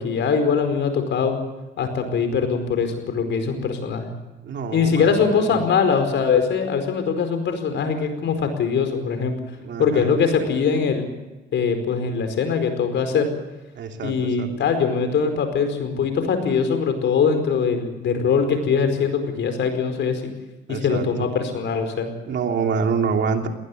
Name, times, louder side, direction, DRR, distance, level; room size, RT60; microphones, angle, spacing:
voice 1, 0.0-1.4 1.8-4.1 4.7-9.4 9.8-11.0 11.5-13.3 14.0-20.3 20.7-22.1, left 6 dB, 70° left, 7 dB, 4.8 m, -22 dB
voice 2, 4.4-5.5 9.6-10.1 13.8-14.5 20.7-21.3 22.3-23.5, right 5 dB, 65° right, 4 dB, 3.0 m, -26 dB
20.0 x 19.0 x 7.9 m, 1.1 s
cardioid pair, 90°, 20 cm